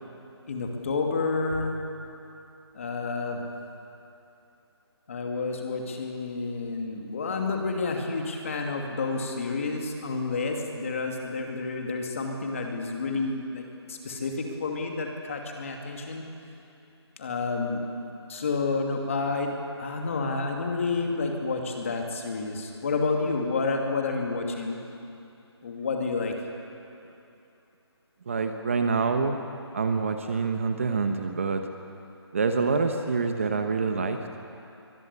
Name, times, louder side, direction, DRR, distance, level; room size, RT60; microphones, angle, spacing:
voice 1, 0.5-1.8 2.7-3.4 5.1-16.2 17.2-17.8 18.3-24.8 25.6-26.3, left 3 dB, 30° left, 2 dB, 2.5 m, -30 dB
voice 2, 28.3-29.4 29.7-31.6 32.3-34.2, right 4 dB, 30° right, 6 dB, 1.0 m, -26 dB
23.5 x 21.0 x 8.3 m, 2.8 s
hypercardioid pair, 175°, 14 cm